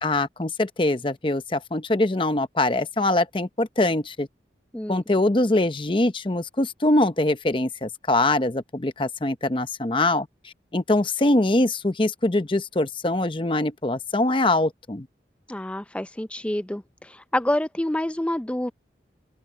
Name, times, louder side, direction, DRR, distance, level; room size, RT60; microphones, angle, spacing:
voice 1, 0.0-4.3 4.9-15.1, left 2 dB, 30° left, 0.8 m, -23 dB
voice 2, 15.5-18.7, left 1 dB, 5° left, 0.4 m, -27 dB
open air
head